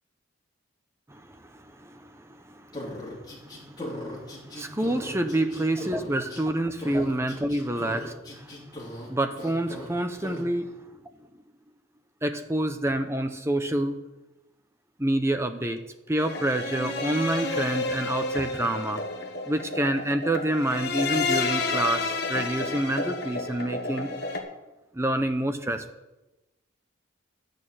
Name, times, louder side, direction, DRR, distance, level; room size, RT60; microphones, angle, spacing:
voice 1, 1.1-10.7 12.2-14.0 15.0-15.8 16.1-19.0 19.4-24.1 24.9-25.8, right 1 dB, 15° right, 0.8 m, -28 dB
sound 1, 2.7-6.4 6.8-9.1 9.4-9.9 10.2-10.4, left 1 dB, 20° left, 2.9 m, -38 dB
sound 2, 16.2-24.4, left 3 dB, 50° left, 1.4 m, -30 dB
11.0 x 6.5 x 8.8 m
head